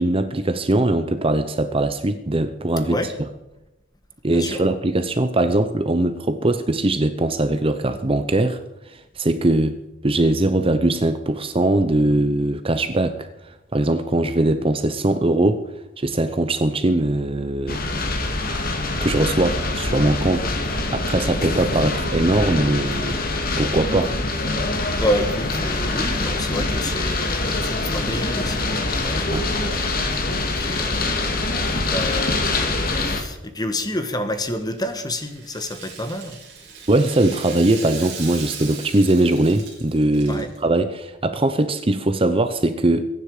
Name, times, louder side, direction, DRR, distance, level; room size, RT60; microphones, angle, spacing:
voice 1, 0.0-3.0 4.2-8.6 8.9-9.8 10.0-13.3 13.7-15.7 16.0-17.8 19.0-20.5 20.9-23.2 23.6-24.1 29.3-29.5 36.9-43.0, right 2 dB, 30° right, 10 dB, 0.8 m, -21 dB
voice 2, 4.3-4.6 24.8-29.3 29.6-29.9 30.3-36.4 40.3-40.5, left 1 dB, 20° left, 8 dB, 1.5 m, -29 dB
sound 1, 17.7-33.2, left 2 dB, 50° left, 2.2 m, -24 dB
Rattle (instrument), 34.3-40.6, right 6 dB, 60° right, 4.9 m, -38 dB
22.5 x 10.0 x 4.9 m, 0.95 s
head